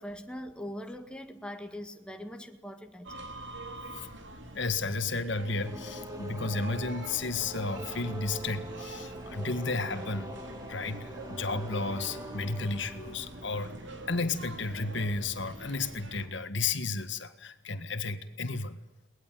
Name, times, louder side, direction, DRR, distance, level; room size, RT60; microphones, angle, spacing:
voice 1, 0.0-3.3, equal, 5° left, 1.7 m, -42 dB
sound 1, 3.0-16.3, right 1 dB, 60° right, 3.7 m, -45 dB
voice 2, 4.5-10.3 10.7-13.7 14.1-18.8, left 3 dB, 60° left, 1.8 m, -33 dB
sound 2, 5.4-14.3, right 1 dB, 20° right, 3.1 m, -44 dB
22.5 x 19.5 x 9.1 m
head